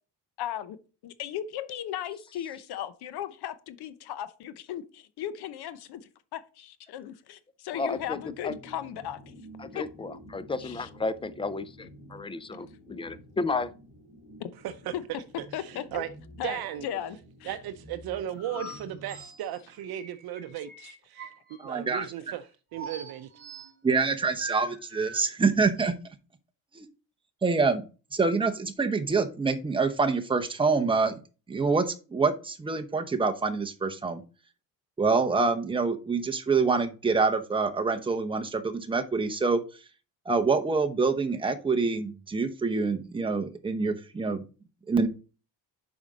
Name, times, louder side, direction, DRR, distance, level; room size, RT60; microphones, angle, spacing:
voice 1, 0.4-0.8 1.0-9.3 9.7-9.8 10.6-10.9 14.4-14.5 14.9-15.0 15.5-16.0 16.4-17.6, left 10 dB, 65° left, 0.8 m, -37 dB
voice 2, 7.7-8.2 8.4-8.5 9.6-13.7, left 3 dB, 15° left, 0.4 m, -33 dB
sound 1, 7.9-19.8, equal, 30° left, 3.0 m, -50 dB
voice 3, 15.6-16.1 16.4-16.8 17.5-21.3 21.6-22.4 22.7-23.3, right 11 dB, 60° right, 0.7 m, -36 dB
sound 2, 18.4-21.6 22.7-23.7 24.4-25.2, right 3 dB, 30° right, 2.9 m, -42 dB
voice 4, 21.6-22.1 23.8-25.9 26.7-26.9 27.4-27.8 28.1-31.2 31.5-34.2 35.0-39.6 40.3-44.4 44.9-45.1, right 4 dB, 10° right, 0.9 m, -26 dB
7.2 x 5.0 x 4.0 m
cardioid pair, 120°, 41 cm